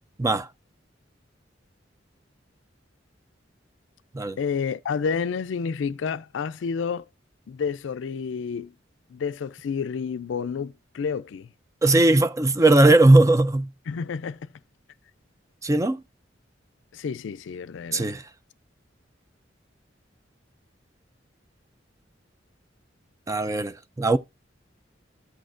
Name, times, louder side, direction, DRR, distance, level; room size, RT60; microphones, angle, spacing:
voice 1, 4.4-7.0 7.5-8.7 9.1-11.5 13.9-14.5 16.9-18.1, left 6 dB, 80° left, 0.4 m, -30 dB
voice 2, 11.8-13.7 15.6-16.0 17.9-18.2 23.3-24.2, right 2 dB, 15° right, 0.4 m, -18 dB
14.0 x 6.4 x 2.5 m
head